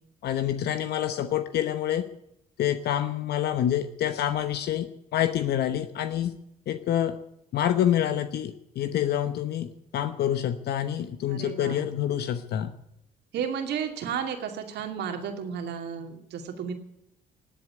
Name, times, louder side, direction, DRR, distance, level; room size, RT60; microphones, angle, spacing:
voice 1, 0.2-2.1 2.6-6.4 6.7-7.2 7.5-9.7 9.9-12.7, left 10 dB, 60° left, 10 dB, 1.0 m, -27 dB
voice 2, 11.3-11.8 13.3-16.7, right 7 dB, 65° right, 5 dB, 2.5 m, -33 dB
19.0 x 7.7 x 9.4 m, 0.80 s
hypercardioid pair, 50°, 19 cm